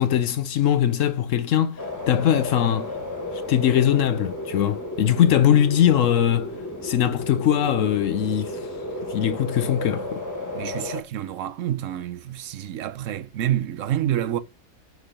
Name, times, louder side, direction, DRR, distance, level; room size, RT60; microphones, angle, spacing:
voice 1, 0.0-2.9 3.5-6.5 6.8-8.7 9.1-10.2, left 10 dB, 75° left, 1.0 m, -21 dB
sound 1, 1.8-11.0, left 1 dB, 15° left, 1.6 m, -33 dB
voice 2, 10.5-14.4, right 11 dB, 80° right, 1.0 m, -28 dB
6.5 x 3.5 x 4.9 m
omnidirectional pair, 1.3 m